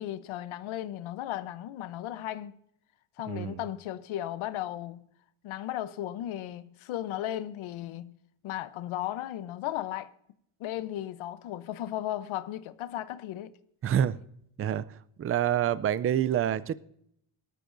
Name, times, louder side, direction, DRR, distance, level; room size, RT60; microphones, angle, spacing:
voice 1, 0.0-2.5 3.2-5.1 5.4-8.1 8.4-10.1 10.6-13.6, left 13 dB, 80° left, 0.9 m, -35 dB
voice 2, 3.3-3.6 13.8-14.2 14.6-14.8 15.2-16.7, right 10 dB, 30° right, 0.4 m, -27 dB
18.5 x 13.0 x 2.6 m
cardioid pair, 120°, 47 cm